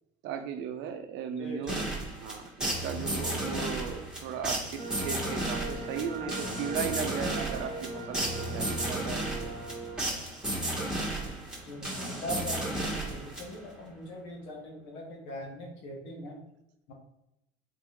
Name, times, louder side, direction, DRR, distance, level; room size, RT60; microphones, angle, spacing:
voice 1, 0.2-9.4, right 7 dB, 65° right, 8 dB, 0.6 m, -37 dB
voice 2, 1.4-1.9 11.6-16.4 16.9-17.0, equal, 70° left, 1 dB, 1.3 m, -41 dB
sound 1, 1.7-13.8, right 1 dB, 5° right, 1.4 m, -34 dB
sound 2, 4.8-10.0, right 3 dB, 15° left, 1.1 m, -39 dB
4.0 x 3.5 x 3.0 m, 0.84 s
supercardioid pair, 85°, 20 cm